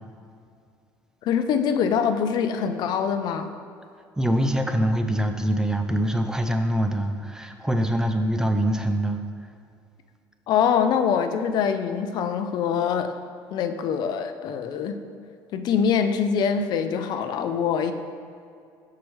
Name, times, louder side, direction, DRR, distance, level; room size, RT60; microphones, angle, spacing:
voice 1, 1.2-3.5 10.5-13.1 13.5-15.0 15.5-17.9, left 7 dB, 60° left, 8 dB, 0.5 m, -24 dB
voice 2, 4.2-9.2, right 1 dB, 5° right, 6 dB, 0.5 m, -24 dB
13.5 x 4.8 x 3.2 m, 2.4 s
cardioid pair, 120°, 8 cm